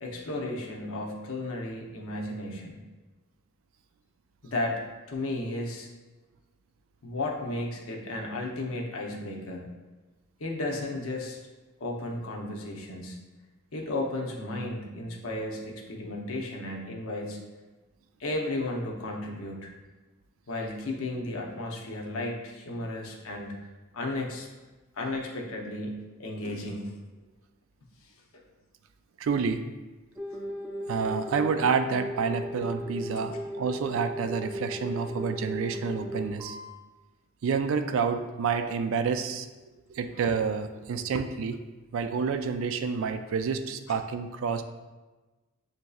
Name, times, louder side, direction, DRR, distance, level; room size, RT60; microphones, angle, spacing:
voice 1, 0.0-2.8 4.4-4.8 5.1-5.9 7.0-9.7 10.4-11.4 11.8-13.2 13.7-17.4 18.2-19.7 20.5-23.5 23.9-24.5 24.9-26.9, left 2 dB, 75° left, 0 dB, 0.7 m, -34 dB
voice 2, 29.2-29.6 30.9-36.6 37.4-39.5 39.9-41.6 41.9-44.6, right 5 dB, 65° right, 9 dB, 0.3 m, -29 dB
sound 1, 30.2-36.7 38.5-38.7, equal, 10° right, 0.6 m, -37 dB
7.1 x 2.6 x 2.3 m, 1.2 s
head